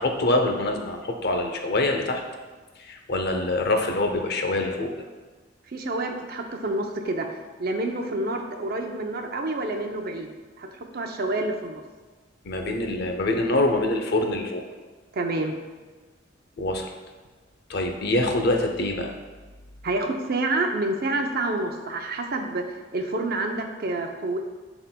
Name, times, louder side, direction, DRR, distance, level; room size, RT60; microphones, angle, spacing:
voice 1, 0.0-2.2 2.8-4.9 12.4-14.6 16.6-16.9 17.7-19.1, left 2 dB, 55° left, 4 dB, 0.7 m, -25 dB
voice 2, 5.7-7.3 7.6-11.8 15.1-15.5 19.8-22.6 22.9-24.4, right 2 dB, 50° right, 4 dB, 0.6 m, -28 dB
11.5 x 4.0 x 2.2 m, 1.3 s
head